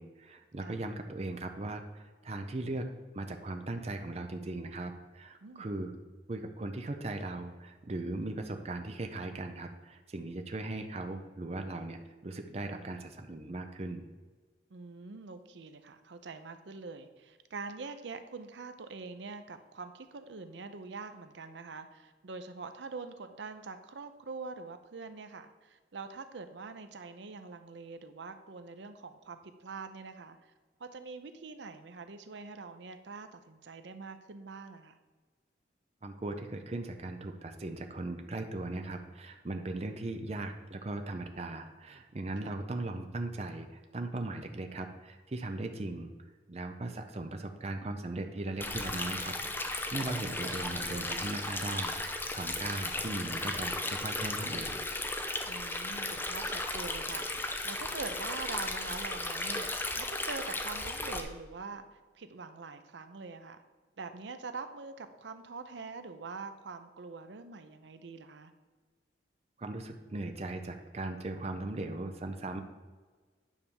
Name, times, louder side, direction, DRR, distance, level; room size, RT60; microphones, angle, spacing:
voice 1, 0.0-2.9 3.1-5.9 6.3-14.0 36.0-46.1 46.5-54.8 69.6-72.6, right 2 dB, 35° right, 6 dB, 0.5 m, -38 dB
voice 2, 14.7-30.5 30.8-35.0 42.4-42.6 55.5-63.6 64.0-68.5, right 4 dB, 75° right, 9 dB, 0.6 m, -44 dB
Stream, 48.6-61.2, left 2 dB, 10° left, 0.5 m, -35 dB
9.4 x 3.5 x 6.9 m, 1.4 s
head